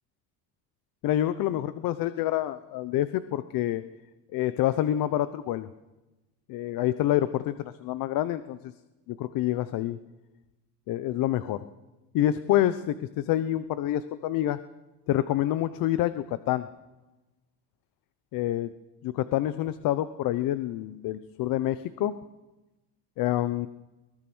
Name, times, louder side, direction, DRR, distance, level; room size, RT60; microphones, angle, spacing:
voice 1, 1.0-3.8 4.3-5.7 6.5-8.7 9.1-10.0 10.9-11.6 12.1-14.6 15.1-16.7 18.3-18.7 19.0-22.1 23.2-23.7, left 13 dB, 60° left, 13 dB, 0.9 m, -27 dB
23.5 x 18.5 x 6.3 m, 1.1 s
cardioid pair, 140°, 39 cm